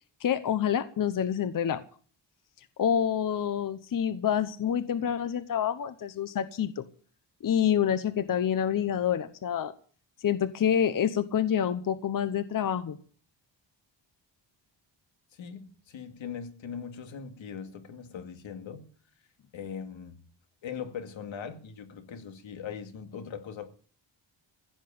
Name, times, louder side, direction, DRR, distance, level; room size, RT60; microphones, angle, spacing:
voice 1, 0.2-1.8 2.8-6.8 7.4-9.7 10.2-13.0, left 9 dB, 45° left, 0.9 m, -27 dB
voice 2, 15.3-18.9 19.5-20.2 20.6-23.7, left 7 dB, 85° left, 2.2 m, -40 dB
16.0 x 7.8 x 8.7 m
wide cardioid pair, 165°, 45 cm